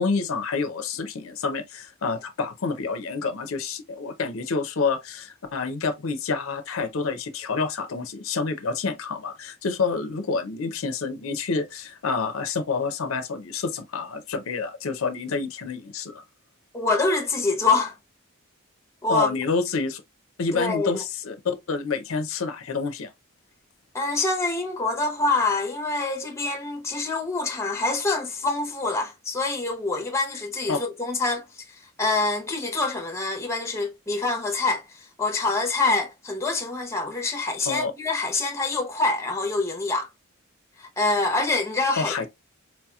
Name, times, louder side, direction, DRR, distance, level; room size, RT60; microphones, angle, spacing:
voice 1, 0.0-16.2 19.1-20.0 20.4-23.1 30.7-30.8 37.7-37.9 42.0-42.3, left 4 dB, 70° left, 0.5 m, -28 dB
voice 2, 16.7-17.9 19.0-19.3 20.5-20.9 23.9-31.4 32.0-34.8 35.2-40.1 40.8-42.1, left 3 dB, 15° left, 0.7 m, -25 dB
4.4 x 2.8 x 2.2 m
head